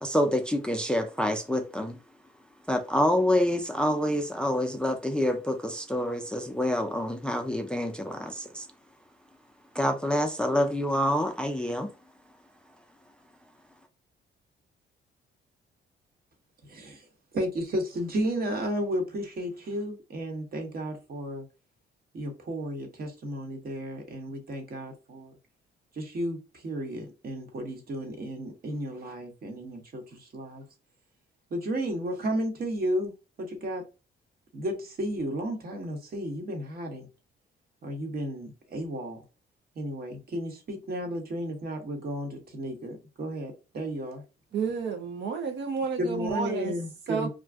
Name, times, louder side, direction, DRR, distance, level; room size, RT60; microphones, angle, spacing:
voice 1, 0.0-2.0 2.7-8.7 9.7-11.9, left 1 dB, 5° left, 0.4 m, -27 dB
voice 2, 16.6-17.1 17.3-21.4 22.1-25.3 25.9-30.6 31.5-33.8 34.5-37.1 37.8-39.2 39.7-44.2 46.0-47.3, equal, 50° right, 1.0 m, -33 dB
voice 3, 44.5-46.7 47.1-47.3, right 5 dB, 65° right, 0.6 m, -30 dB
2.5 x 2.2 x 3.3 m
cardioid pair, 90°, 20 cm